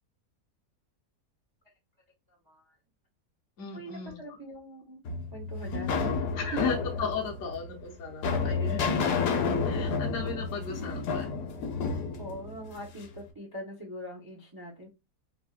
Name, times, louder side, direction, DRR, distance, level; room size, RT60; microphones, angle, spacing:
voice 1, 2.3-2.8 3.7-5.0 5.3-6.2 6.5-6.6 11.8-14.9, right 1 dB, 25° right, 0.4 m, -42 dB
voice 2, 3.6-4.2 6.4-9.3 9.6-11.5, left 5 dB, 60° left, 1.0 m, -36 dB
sound 1, 5.0-13.2, left 4 dB, 85° left, 1.2 m, -30 dB
3.4 x 2.1 x 2.3 m
omnidirectional pair, 1.6 m